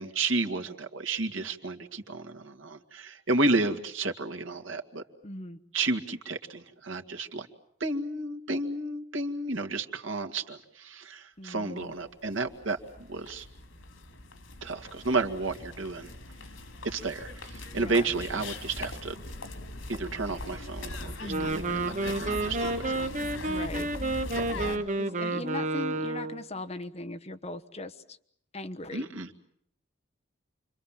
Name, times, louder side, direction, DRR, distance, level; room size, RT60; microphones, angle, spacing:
voice 1, 0.0-5.0 5.7-7.5 7.8-12.8 13.1-13.5 14.6-16.1 16.8-19.2 19.9-23.0 24.3-24.5 28.9-29.3, right 3 dB, 85° right, 4 dB, 2.2 m, -32 dB
voice 2, 5.2-5.6 11.4-11.9 17.7-18.1 21.2-21.5 23.5-23.9 24.5-28.2 28.5-29.1, left 2 dB, 35° left, 7 dB, 1.2 m, -39 dB
sound 1, 12.0-12.1 12.3-24.8, left 2 dB, 85° left, 3.0 m, -41 dB
Wind instrument woodwind instrument, 21.2-26.5, right 2 dB, 40° right, 1.3 m, -30 dB
29.0 x 25.0 x 7.5 m, 0.70 s
head